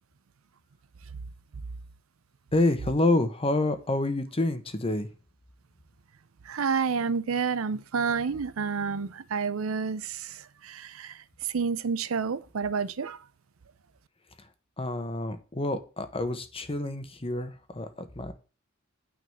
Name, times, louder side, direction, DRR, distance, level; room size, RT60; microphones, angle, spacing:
voice 1, 2.5-5.1 14.8-18.3, left 2 dB, 30° left, 1.2 m, -28 dB
voice 2, 6.5-11.1 11.5-13.2, right 5 dB, 80° right, 0.6 m, -29 dB
9.5 x 4.1 x 7.1 m
head